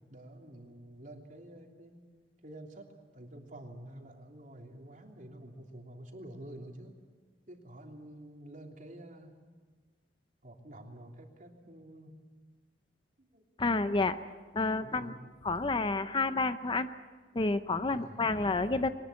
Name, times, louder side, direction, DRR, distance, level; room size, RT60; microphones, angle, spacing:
voice 1, 0.1-2.0 2.4-7.0 7.5-9.3 10.4-12.1 13.2-13.4 14.8-15.2 17.9-18.7, right 1 dB, 50° right, 1 dB, 3.1 m, -49 dB
voice 2, 13.6-14.2 14.5-16.9 17.3-18.9, left 3 dB, 30° left, 11 dB, 0.7 m, -30 dB
22.5 x 19.5 x 8.4 m, 1.4 s
head